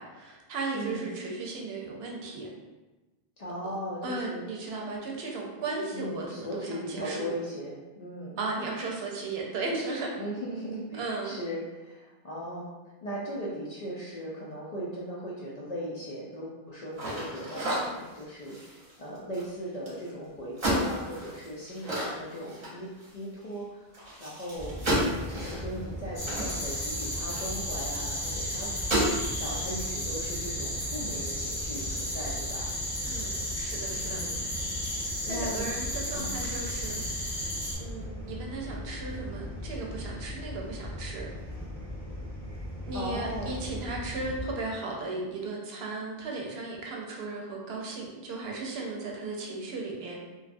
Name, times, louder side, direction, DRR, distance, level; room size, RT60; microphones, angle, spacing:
voice 1, 0.0-2.5 4.0-7.3 8.4-10.2 11.0-11.4 33.0-34.2 34.8-37.1 37.8-41.3 42.9-50.2, right 3 dB, 80° right, -1 dB, 0.8 m, -36 dB
voice 2, 0.7-1.1 3.4-4.5 5.9-8.4 10.2-12.7 13.0-23.9 24.2-24.8 25.1-32.7 34.0-34.4 35.2-35.7 36.1-36.4 42.9-43.6, equal, 55° left, -5 dB, 0.5 m, -38 dB
sound 1, 16.9-20.1 20.5-23.2 23.5-23.6 23.9-27.8 28.3-28.4 28.7-29.3, right 1 dB, 40° right, 0.8 m, -32 dB
sound 2, 24.5-44.5, left 1 dB, 10° left, 0.7 m, -39 dB
sound 3, 26.2-37.8, equal, 85° left, 1.2 m, -34 dB
2.6 x 2.3 x 2.5 m, 1.2 s
omnidirectional pair, 1.0 m